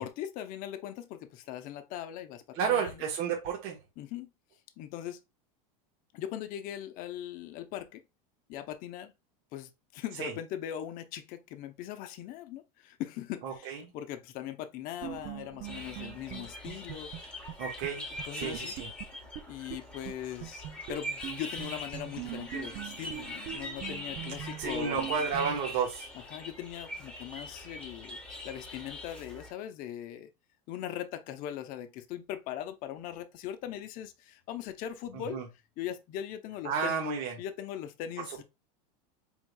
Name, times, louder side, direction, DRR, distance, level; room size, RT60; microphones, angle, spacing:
voice 1, 0.0-3.0 4.0-4.3 4.8-5.2 6.1-8.0 8.5-9.1 9.5-17.1 18.2-18.7 19.5-25.1 26.1-28.2 28.4-30.3 30.7-35.4 35.8-37.1 37.4-38.4, left 11 dB, 45° left, 0.7 m, -40 dB
voice 2, 2.5-3.8 10.2-10.3 13.4-13.8 17.6-18.1 18.3-18.9 24.6-26.1 35.1-35.4 36.6-37.3, right 6 dB, 55° right, 1.2 m, -31 dB
sound 1, 15.0-17.6 17.8-17.9 18.2-19.8 20.1-20.2 20.4-25.6, right 12 dB, 40° right, 0.4 m, -42 dB
sound 2, 15.6-29.5, left 1 dB, 5° left, 1.2 m, -42 dB
4.6 x 3.6 x 2.2 m
supercardioid pair, 130°, 19 cm